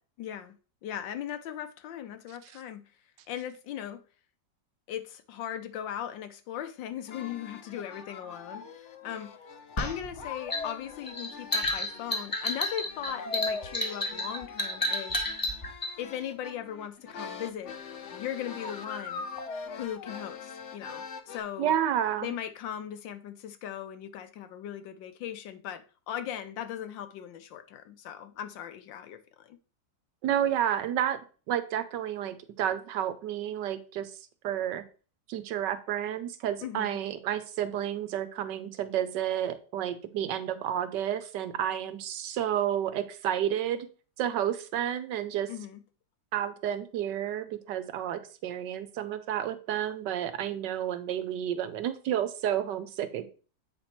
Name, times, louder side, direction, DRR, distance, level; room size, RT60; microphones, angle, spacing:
voice 1, 0.2-0.5 0.8-2.9 3.3-4.0 4.9-9.3 9.8-15.5 16.0-17.7 18.1-19.3 19.8-21.7 22.2-29.6 36.6-37.0 45.5-45.8, left 10 dB, 85° left, 1.5 m, -38 dB
sound 1, 7.1-21.4, left 4 dB, 55° left, 0.9 m, -42 dB
sound 2, 9.8-15.9, left 1 dB, 15° left, 0.8 m, -31 dB
voice 2, 21.6-22.3 30.2-31.2 31.5-34.1 34.4-34.8 35.3-43.9 44.2-45.5 46.3-53.3, right 10 dB, 75° right, 1.4 m, -30 dB
8.2 x 4.4 x 4.3 m
omnidirectional pair, 2.0 m